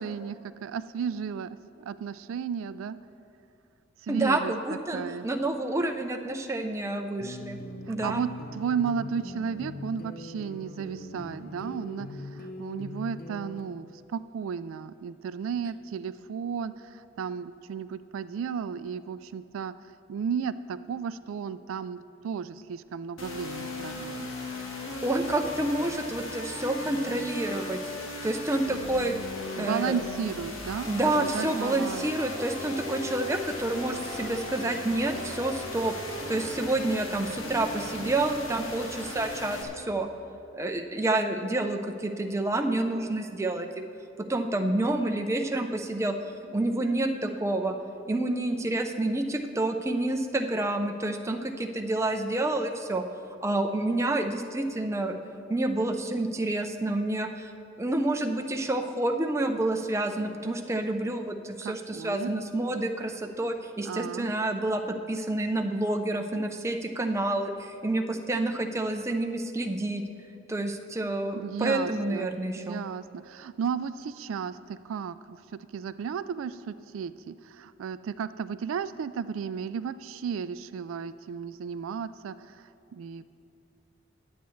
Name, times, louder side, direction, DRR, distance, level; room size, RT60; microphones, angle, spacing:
voice 1, 0.0-3.0 4.0-4.5 4.9-5.3 7.9-19.7 20.1-24.3 29.6-32.1 61.6-62.3 63.8-64.3 71.3-72.3 72.6-83.3, right 6 dB, 75° right, 14 dB, 0.3 m, -34 dB
voice 2, 4.1-7.6 7.9-8.2 25.0-27.8 28.2-29.2 29.6-30.0 30.9-35.9 36.3-40.1 40.5-43.8 44.2-46.1 46.5-47.7 48.1-53.0 53.4-55.2 55.5-57.5 57.8-64.8 65.1-70.0 70.5-72.8, right 2 dB, 15° right, 4 dB, 0.5 m, -28 dB
sound 1, 7.2-13.6, left 1 dB, 45° left, 0.7 m, -41 dB
sound 2, 23.2-39.6, left 2 dB, 75° left, 1.5 m, -37 dB
20.0 x 8.1 x 3.2 m, 2.7 s
head